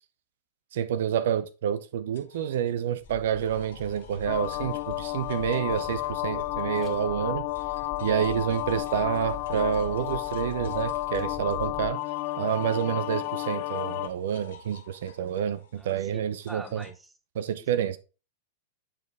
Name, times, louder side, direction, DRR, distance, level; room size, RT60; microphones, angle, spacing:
voice 1, 0.7-7.5 8.0-12.0 12.4-16.8 17.4-18.0, right 9 dB, 65° right, 0.5 m, -28 dB
sound 1, 2.1-7.1 7.4-16.9, left 6 dB, 70° left, 1.7 m, -54 dB
sound 2, 3.0-11.9, left 7 dB, 25° left, 1.9 m, -44 dB
sound 3, 4.3-14.1, left 19 dB, 55° left, 0.4 m, -32 dB
voice 2, 15.8-17.1 17.6-18.0, right 1 dB, 10° right, 0.9 m, -45 dB
8.9 x 4.2 x 3.4 m
hypercardioid pair, 100°, 0 cm